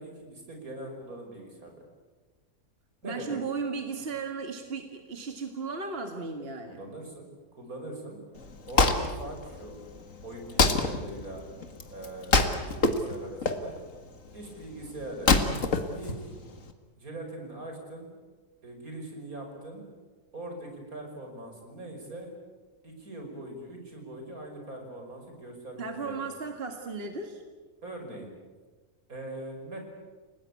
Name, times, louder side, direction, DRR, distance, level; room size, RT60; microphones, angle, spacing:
voice 1, 0.0-1.8 3.0-3.4 6.7-8.2 8.7-9.8 10.2-11.5 11.9-13.8 14.3-15.3 16.0-16.2 17.0-18.1 18.6-19.8 20.3-22.3 22.8-26.3 27.8-28.3 29.1-29.8, right 1 dB, 75° right, 3 dB, 6.2 m, -42 dB
voice 2, 3.0-6.8 25.8-27.4, right 4 dB, 40° right, 5 dB, 2.1 m, -35 dB
Wood, 8.4-16.7, left 3 dB, 60° left, 2.2 m, -27 dB
30.0 x 18.5 x 8.5 m, 1.3 s
omnidirectional pair, 1.5 m